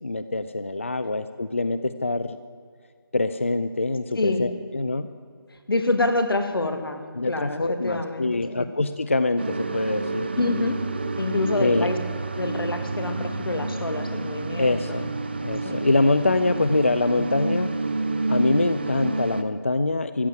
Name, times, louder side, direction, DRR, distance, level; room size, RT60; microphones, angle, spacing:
voice 1, 0.0-2.4 3.1-5.1 7.2-10.3 11.6-11.9 14.6-15.1 15.4-17.7 18.3-20.3, left 2 dB, 35° left, 12 dB, 0.3 m, -24 dB
voice 2, 5.7-8.4 10.4-10.8 11.2-12.0 12.3-14.8 15.6-15.8, left 2 dB, 85° left, 7 dB, 1.8 m, -26 dB
sound 1, 9.4-19.4, right 3 dB, 30° right, 0.6 m, -29 dB
14.5 x 7.6 x 9.1 m, 2.1 s
figure-of-eight pair, 175°, 12 cm